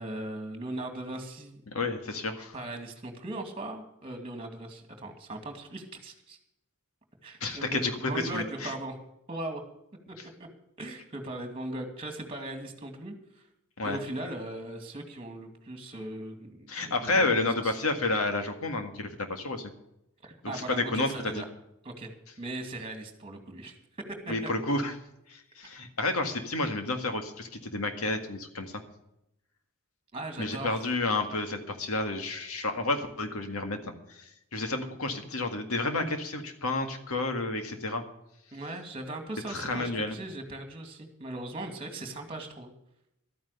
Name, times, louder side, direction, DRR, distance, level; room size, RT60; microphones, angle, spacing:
voice 1, 0.0-1.6 2.5-6.4 7.2-9.0 9.3-9.6 10.8-13.4 13.8-17.3 17.6-17.8 20.2-21.4 21.8-22.1 22.4-23.8 24.2-24.5 30.1-30.9 38.5-42.7, right 1 dB, 25° right, 5 dB, 2.3 m, -39 dB
voice 2, 1.7-2.6 7.4-8.7 13.8-14.0 16.7-19.7 20.4-21.4 24.3-24.9 25.3-28.7 30.4-38.0 39.5-40.2, left 2 dB, 85° left, 6 dB, 1.9 m, -30 dB
12.5 x 9.4 x 6.8 m, 0.82 s
head